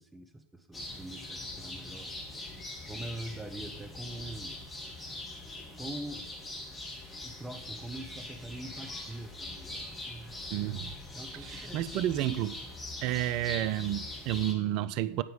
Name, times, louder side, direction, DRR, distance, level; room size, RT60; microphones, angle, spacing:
voice 1, 0.0-2.1 2.9-4.6 5.8-6.3 7.2-10.4 11.1-12.0, right 2 dB, 5° right, 6 dB, 0.8 m, -43 dB
sound 1, 0.7-14.5, left 2 dB, 15° left, 1.5 m, -42 dB
voice 2, 10.5-10.9 11.3-12.6 13.0-15.2, right 13 dB, 40° right, 15 dB, 0.3 m, -31 dB
8.7 x 4.5 x 5.1 m, 0.84 s
figure-of-eight pair, 90°, 0 cm